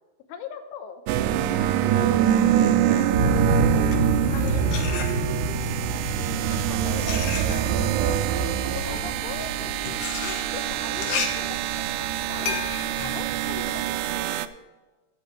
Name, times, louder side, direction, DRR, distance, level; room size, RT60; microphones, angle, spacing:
voice 1, 0.3-1.0 2.9-3.9 4.3-5.1 6.3-7.9 8.6-9.5 10.2-11.5 11.8-12.6 13.0-14.3, left 7 dB, 85° left, 8 dB, 3.4 m, -40 dB
sound 1, 1.1-14.5, right 10 dB, 90° right, 2.3 m, -25 dB
voice 2, 1.4-1.9 2.3-3.3 8.8-9.2, right 1 dB, 40° right, -3 dB, 5.4 m, -41 dB
sound 2, 3.1-13.8, right 2 dB, 60° right, 2.3 m, -29 dB
sound 3, 3.6-5.6 6.4-14.3, left 5 dB, 65° left, 2.3 m, -34 dB
17.0 x 8.2 x 3.2 m, 1.2 s
omnidirectional pair, 5.4 m